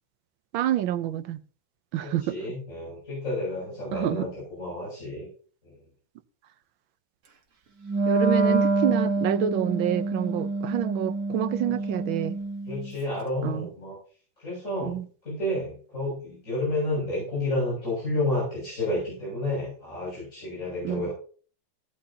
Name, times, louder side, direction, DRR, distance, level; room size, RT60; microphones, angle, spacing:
voice 1, 0.5-1.4 1.9-2.4 3.9-4.3 8.1-12.4 13.4-13.7 14.8-15.1 20.8-21.1, right 11 dB, 85° right, 1.6 m, -28 dB
voice 2, 2.0-5.3 5.6-5.8 12.7-14.0 14.4-15.0 15.2-21.1, left 1 dB, 40° left, 7.4 m, -30 dB
Wind instrument woodwind instrument, 7.8-12.9, right 3 dB, 50° right, 1.8 m, -26 dB
16.0 x 11.5 x 2.9 m
omnidirectional pair, 2.1 m